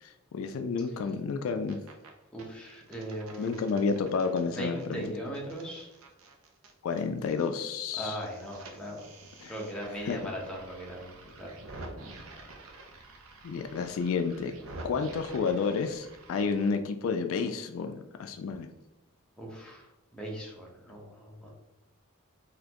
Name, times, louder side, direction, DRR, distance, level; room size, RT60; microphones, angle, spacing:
voice 1, 0.0-1.8 3.4-5.0 6.8-8.2 9.4-9.5 10.1-10.2 13.4-14.5 14.8-18.7, left 5 dB, 65° left, 7 dB, 0.3 m, -30 dB
sound 1, 1.4-2.1 2.4-7.5 7.7-16.7, right 2 dB, 70° right, 0.7 m, -48 dB
voice 2, 2.3-3.7 4.4-5.9 7.9-9.0 9.5-11.6 19.4-19.9 20.1-21.5, equal, 5° left, -3 dB, 0.9 m, -39 dB
4.0 x 2.9 x 2.9 m, 0.98 s
head